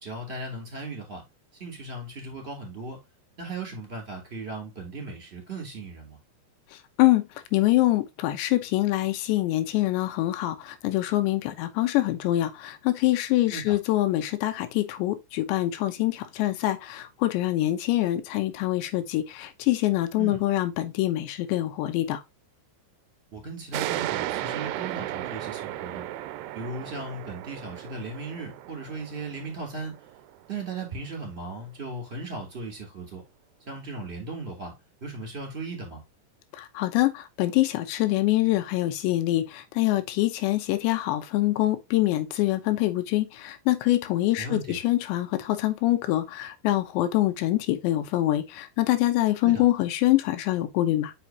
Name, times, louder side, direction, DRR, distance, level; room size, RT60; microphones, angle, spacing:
voice 1, 0.0-1.2 1.6-3.0 3.4-6.2 13.5-13.8 20.2-20.4 23.3-26.1 26.5-30.0 30.5-33.2 33.7-34.7 35.0-36.0 44.4-44.8 49.4-49.6, right 3 dB, 15° right, 2.5 m, -37 dB
voice 2, 7.5-22.2 36.5-51.1, left 16 dB, 90° left, 3.1 m, -25 dB
sound 1, 23.7-30.9, right 14 dB, 80° right, 2.5 m, -35 dB
7.6 x 5.4 x 2.8 m
omnidirectional pair, 5.0 m